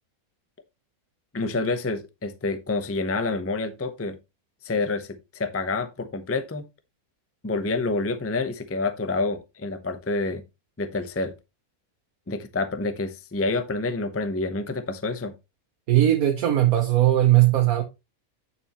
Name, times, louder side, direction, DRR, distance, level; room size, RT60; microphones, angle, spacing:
voice 1, 1.3-4.2 4.6-6.6 7.4-10.4 10.8-11.3 12.3-15.3, left 3 dB, 15° left, 0.6 m, -28 dB
voice 2, 15.9-17.8, right 13 dB, 85° right, 1.4 m, -19 dB
8.8 x 7.1 x 2.9 m
omnidirectional pair, 1.5 m